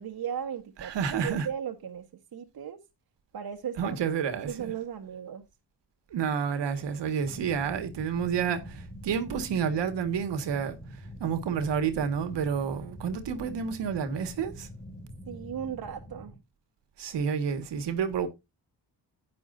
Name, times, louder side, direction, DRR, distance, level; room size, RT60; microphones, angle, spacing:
voice 1, 0.0-0.9 1.2-2.0 2.3-2.8 3.3-4.0 4.5-5.4 15.3-16.3, right 8 dB, 60° right, 1.5 m, -36 dB
voice 2, 0.8-1.5 3.8-4.7 6.1-14.7 17.0-18.3, right 7 dB, 80° right, 1.9 m, -30 dB
sound 1, 7.2-16.4, equal, 15° left, 3.5 m, -45 dB
10.5 x 9.3 x 2.7 m
cardioid pair, 85°, 42 cm